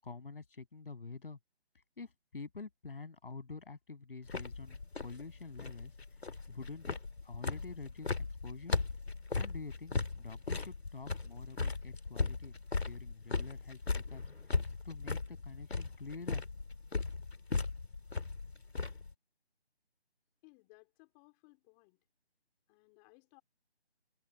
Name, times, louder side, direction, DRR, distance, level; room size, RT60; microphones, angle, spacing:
voice 1, 0.0-1.4 2.0-5.9 6.5-7.0 7.2-8.8 9.4-12.6 12.8-14.2 14.8-16.4, left 4 dB, 55° left, 7.7 m, -47 dB
sound 1, 4.3-19.1, left 3 dB, 70° left, 3.3 m, -37 dB
voice 2, 20.4-22.0 22.7-23.4, left 31 dB, 10° left, 4.5 m, -62 dB
figure-of-eight pair, 170°, 33 cm